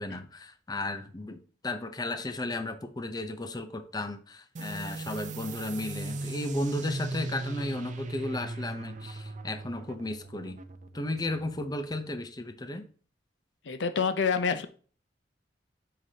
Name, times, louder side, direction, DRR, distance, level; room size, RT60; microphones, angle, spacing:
voice 1, 0.0-10.6 10.9-12.8, left 1 dB, 20° left, 0.6 m, -34 dB
sound 1, 4.6-11.8, right 2 dB, 45° right, 0.6 m, -38 dB
voice 2, 13.6-14.7, left 5 dB, 75° left, 0.6 m, -27 dB
7.9 x 5.9 x 2.8 m
head